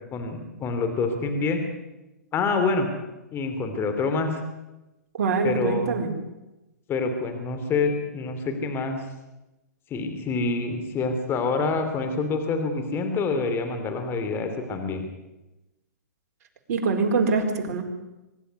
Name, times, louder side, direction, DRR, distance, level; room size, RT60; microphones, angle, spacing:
voice 1, 0.1-1.6 2.3-2.9 3.3-4.3 5.4-5.9 6.9-9.0 9.9-15.1, left 4 dB, 25° left, 6 dB, 3.1 m, -26 dB
voice 2, 5.2-6.1 16.7-17.8, right 4 dB, 55° right, 3 dB, 4.5 m, -24 dB
23.5 x 11.5 x 9.6 m, 0.99 s
hypercardioid pair, 125°, 10 cm